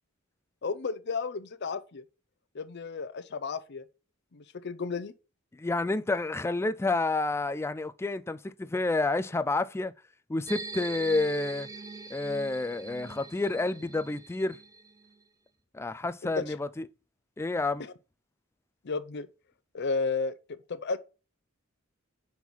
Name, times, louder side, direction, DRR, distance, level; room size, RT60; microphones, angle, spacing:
voice 1, 0.6-2.0 2.5-3.8 4.3-5.1 16.2-16.4 17.8-17.9 18.8-19.3 19.7-20.3 20.7-21.0, left 4 dB, 55° left, 0.6 m, -33 dB
voice 2, 5.5-9.9 10.3-11.7 12.1-14.6 15.7-16.9 17.4-17.9, left 2 dB, 10° left, 0.3 m, -29 dB
sound 1, 10.5-15.2, right 4 dB, 15° right, 0.7 m, -43 dB
5.6 x 4.7 x 5.4 m
head